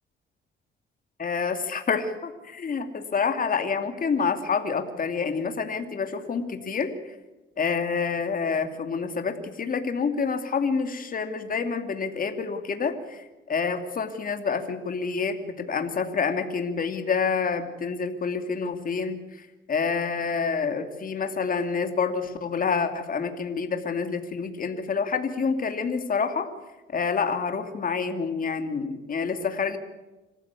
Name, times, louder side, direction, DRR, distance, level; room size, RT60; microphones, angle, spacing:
voice 1, 1.2-6.9 7.6-19.2 19.7-26.5 26.9-29.8, left 5 dB, 45° left, 7 dB, 2.6 m, -28 dB
26.5 x 15.0 x 8.3 m, 1.1 s
cardioid pair, 90°, 20 cm